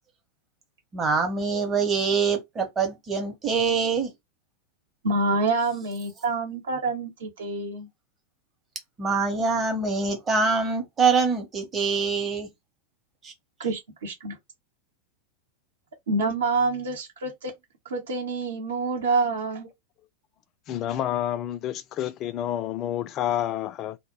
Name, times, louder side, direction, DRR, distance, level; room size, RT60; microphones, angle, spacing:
voice 1, 0.9-4.1 9.0-12.5 13.2-13.3, right 5 dB, 20° right, 0.8 m, -24 dB
voice 2, 5.0-7.9 13.6-14.4 16.1-17.5 17.8-19.7, right 3 dB, 65° right, 0.8 m, -27 dB
voice 3, 20.7-24.0, left 11 dB, 35° left, 0.3 m, -29 dB
2.1 x 2.0 x 3.0 m
figure-of-eight pair, 90°, 0 cm